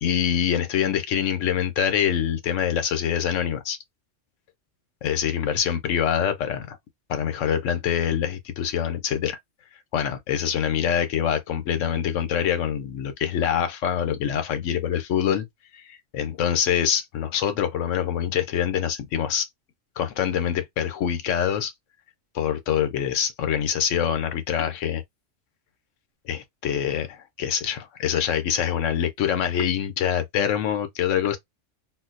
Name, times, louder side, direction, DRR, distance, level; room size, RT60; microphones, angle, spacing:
voice 1, 0.0-3.8 5.0-6.8 7.1-9.4 9.9-15.5 15.7-19.5 20.0-21.7 22.3-25.0 26.3-31.4, left 9 dB, 90° left, 1.0 m, -25 dB
4.1 x 2.0 x 2.5 m
omnidirectional pair, 1.2 m